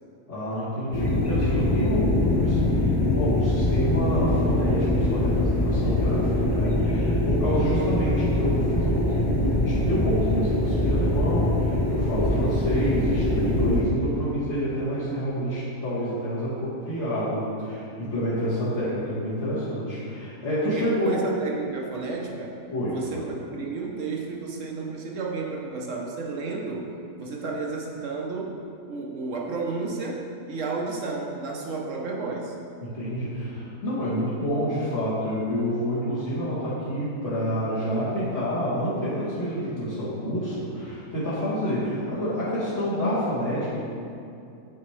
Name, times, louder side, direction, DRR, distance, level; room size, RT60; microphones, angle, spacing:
voice 1, 0.3-21.2 22.7-23.2 32.8-43.8, equal, 55° left, -13 dB, 1.6 m, -28 dB
sound 1, 0.9-13.8, left 1 dB, 25° left, 0.5 m, -23 dB
voice 2, 20.6-22.5 22.9-28.6 28.9-32.6, right 4 dB, 65° right, -1 dB, 1.1 m, -32 dB
8.9 x 4.2 x 3.2 m, 2.5 s
omnidirectional pair, 1.5 m